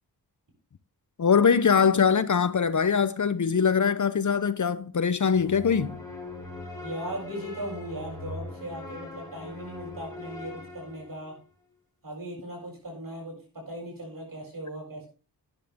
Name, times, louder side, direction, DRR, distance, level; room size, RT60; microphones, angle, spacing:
voice 1, 1.2-6.0, left 6 dB, 50° left, 0.8 m, -22 dB
sound 1, 5.3-11.4, left 2 dB, 10° left, 6.2 m, -41 dB
voice 2, 6.8-11.4 12.0-15.1, right 1 dB, 60° right, 7.5 m, -38 dB
12.5 x 10.0 x 3.6 m
cardioid pair, 65°, 39 cm